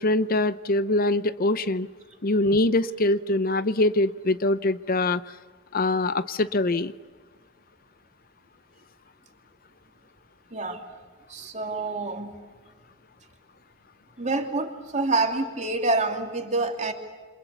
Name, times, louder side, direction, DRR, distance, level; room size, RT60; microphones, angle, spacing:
voice 1, 0.0-1.9 2.2-5.2 5.7-6.9, left 2 dB, 50° left, 14 dB, 0.7 m, -23 dB
voice 2, 10.5-10.8 11.3-12.3 14.2-16.9, right 3 dB, 40° right, 4 dB, 2.8 m, -27 dB
29.0 x 26.5 x 7.0 m, 1.4 s
head